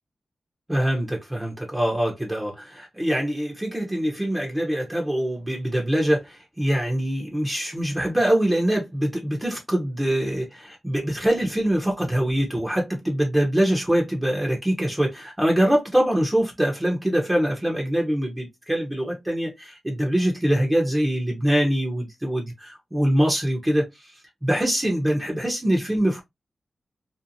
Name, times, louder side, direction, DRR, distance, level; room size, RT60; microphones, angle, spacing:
voice 1, 0.7-24.1 24.4-26.2, right 1 dB, 15° right, 0.8 m, -24 dB
2.6 x 2.0 x 2.7 m
wide cardioid pair, 80°, 0 cm